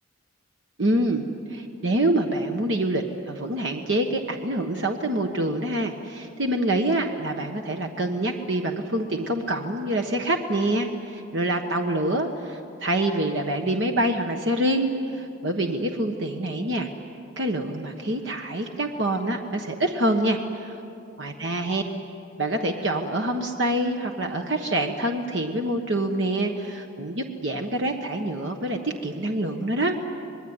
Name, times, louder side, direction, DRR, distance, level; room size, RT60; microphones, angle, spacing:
voice 1, 0.8-1.2 1.5-16.9 17.4-20.8 21.2-21.8 22.4-29.9, right 1 dB, 60° right, 3 dB, 1.3 m, -26 dB
26.0 x 21.0 x 9.6 m, 2.7 s
head